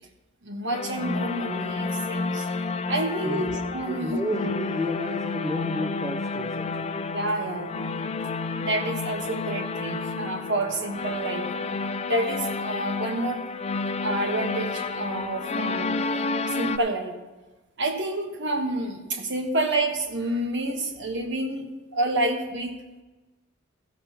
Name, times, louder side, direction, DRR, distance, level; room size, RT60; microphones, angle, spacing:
voice 1, 0.4-2.5 2.9-4.2 7.1-7.9 8.6-13.4 14.0-16.0 16.5-17.1 17.8-22.7, right 1 dB, 60° right, 4 dB, 1.4 m, -29 dB
sound 1, 0.7-16.8, left 3 dB, 30° left, 0.5 m, -30 dB
voice 2, 3.9-7.0, left 1 dB, 15° right, 3 dB, 0.7 m, -31 dB
15.0 x 5.2 x 5.8 m, 1.2 s
head